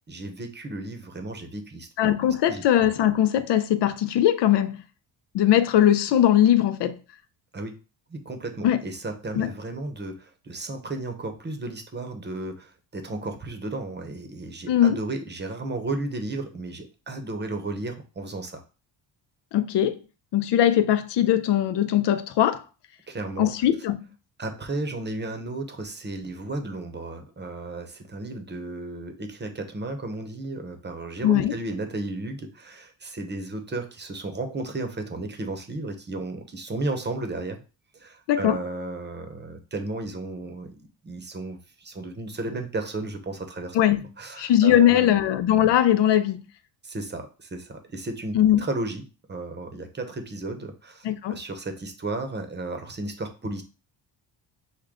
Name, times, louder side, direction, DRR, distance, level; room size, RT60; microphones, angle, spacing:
voice 1, 0.1-2.9 7.5-7.8 8.1-18.6 23.1-23.5 24.4-37.6 37.9-43.8 44.2-45.2 46.8-49.0 49.3-53.6, right 2 dB, 25° right, 0.8 m, -34 dB
voice 2, 2.0-4.8 5.3-7.0 8.6-8.8 9.4-9.5 14.7-15.0 19.5-20.0 20.3-22.6 23.4-24.0 31.2-31.6 38.3-38.6 43.7-44.0 44.4-46.4 48.3-48.6 51.0-51.4, left 11 dB, 70° left, 0.6 m, -20 dB
6.3 x 2.2 x 3.6 m
cardioid pair, 120°, 43 cm